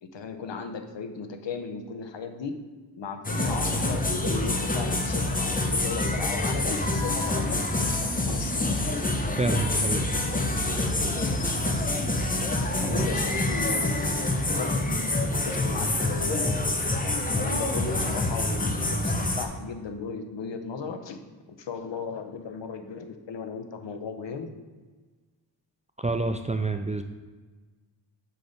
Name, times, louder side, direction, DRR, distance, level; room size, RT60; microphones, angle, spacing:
voice 1, 0.0-2.6 3.0-8.8 12.8-15.0 15.3-16.7 17.2-21.2 21.5-24.5, left 5 dB, 75° left, 7 dB, 0.8 m, -36 dB
sound 1, 3.2-19.5, left 2 dB, 20° left, 0.7 m, -26 dB
voice 2, 9.4-10.0 12.9-13.2 26.0-27.0, right 3 dB, 20° right, 6 dB, 0.3 m, -28 dB
5.8 x 5.0 x 4.0 m, 1.4 s
wide cardioid pair, 65°, 44 cm